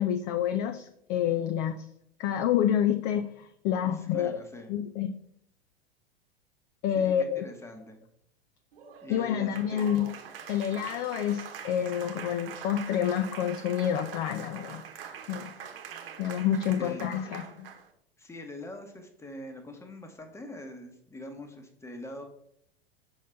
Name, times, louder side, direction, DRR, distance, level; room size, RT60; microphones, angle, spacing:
voice 1, 0.0-1.9 2.2-4.4 4.7-5.2 6.8-7.4 9.1-10.1 10.5-14.8 15.3-15.5 16.2-17.7, left 9 dB, 35° left, 8 dB, 0.4 m, -28 dB
voice 2, 3.9-4.7 6.9-8.0 9.0-9.9 16.8-17.3 18.2-22.2, left 1 dB, 10° left, 5 dB, 1.0 m, -43 dB
Applause, 8.7-17.9, right 8 dB, 65° right, 1.0 m, -44 dB
6.3 x 5.4 x 3.3 m, 0.73 s
figure-of-eight pair, 95°, 31 cm